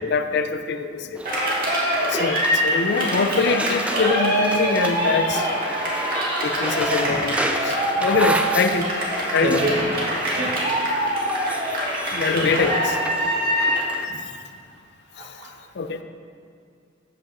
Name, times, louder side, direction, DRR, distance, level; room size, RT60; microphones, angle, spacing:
voice 1, 0.0-1.2 2.0-5.5 6.4-8.9 9.3-9.6 12.1-13.0 15.2-15.3 15.8-16.0, left 4 dB, 60° left, 9 dB, 0.5 m, -24 dB
sound 1, 1.1-14.1, right 1 dB, 5° right, 0.3 m, -32 dB
Cheering, 1.3-13.9, equal, 50° right, 1.9 m, -24 dB
voice 2, 6.9-7.2 9.4-9.9 10.4-10.7 11.0-11.2 12.4-12.5 14.1-14.2 15.2-15.5, right 1 dB, 75° right, 0 dB, 1.3 m, -28 dB
13.0 x 8.0 x 2.6 m, 2.3 s
head